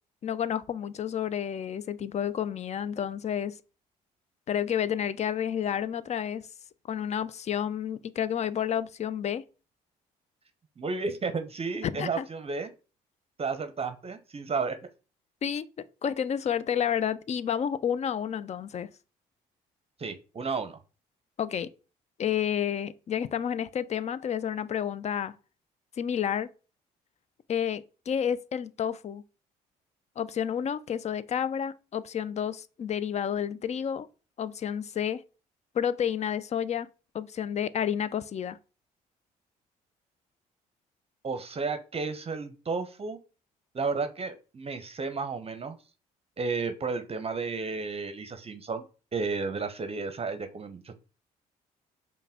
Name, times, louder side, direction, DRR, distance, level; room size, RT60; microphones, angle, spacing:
voice 1, 0.2-3.6 4.5-6.5 6.9-9.4 11.8-12.3 15.4-15.7 16.0-18.9 21.4-21.7 22.2-25.3 26.0-26.5 27.5-29.2 30.2-34.1 34.4-35.2 35.7-36.9 37.1-38.6, left 9 dB, 35° left, 0.4 m, -30 dB
voice 2, 10.8-12.7 13.4-14.8 20.0-20.8 41.2-43.2 43.7-45.8 46.4-48.8 49.1-50.9, right 4 dB, 30° right, 0.7 m, -32 dB
5.3 x 2.1 x 3.5 m
hypercardioid pair, 50°, 19 cm